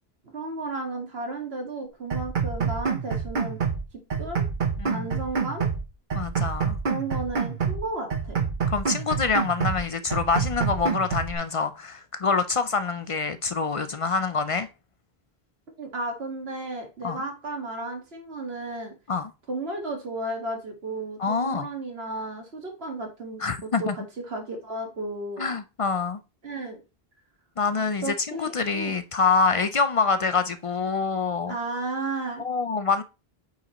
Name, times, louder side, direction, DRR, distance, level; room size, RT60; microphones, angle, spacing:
voice 1, 0.3-3.6 4.2-4.4 4.9-5.7 6.9-8.4 15.8-18.9 19.5-25.5 26.4-26.8 28.0-28.9 31.5-32.4, right 2 dB, 80° right, 1.9 m, -33 dB
sound 1, 2.1-3.8 4.1-5.8 6.1-7.8 8.1-9.8 10.1-11.3, right 6 dB, 50° right, 1.1 m, -27 dB
voice 2, 6.1-6.8 8.7-14.7 17.0-17.2 19.1-19.3 21.2-21.7 23.4-23.9 25.4-26.2 27.6-31.5 32.4-33.0, left 4 dB, 45° left, 0.4 m, -26 dB
8.1 x 5.0 x 3.0 m
omnidirectional pair, 1.0 m